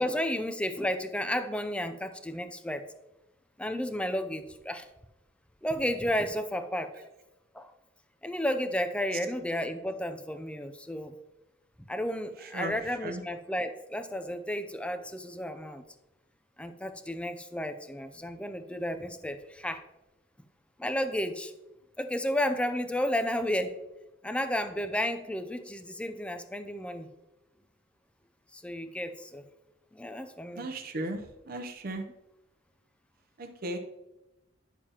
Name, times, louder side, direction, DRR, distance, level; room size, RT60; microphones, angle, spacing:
voice 1, 0.0-2.8 3.6-4.9 5.6-6.9 7.5-7.7 8.2-11.1 11.9-15.8 16.6-19.8 20.8-21.5 22.0-23.8 24.2-27.1 28.5-29.4 29.9-30.7, left 1 dB, 5° left, 10 dB, 0.5 m, -32 dB
voice 2, 30.6-32.0 33.4-33.8, right 1 dB, 50° right, 5 dB, 0.7 m, -36 dB
10.0 x 6.7 x 2.9 m, 0.98 s
head